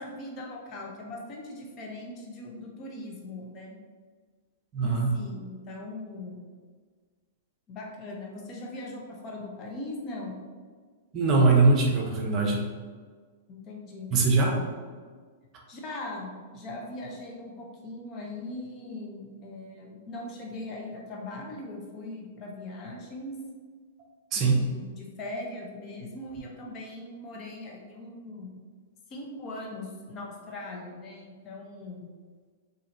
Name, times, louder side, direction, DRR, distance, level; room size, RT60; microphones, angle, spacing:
voice 1, 0.0-3.8 4.8-6.4 7.7-10.4 13.5-14.2 15.7-23.3 24.3-28.5 29.1-32.1, left 2 dB, 35° left, -1 dB, 0.8 m, -40 dB
voice 2, 4.7-5.1 11.1-12.6 14.1-14.6 24.3-24.6, right 3 dB, 35° right, 0 dB, 0.7 m, -22 dB
4.1 x 2.7 x 3.0 m, 1.5 s
hypercardioid pair, 120°, 0 cm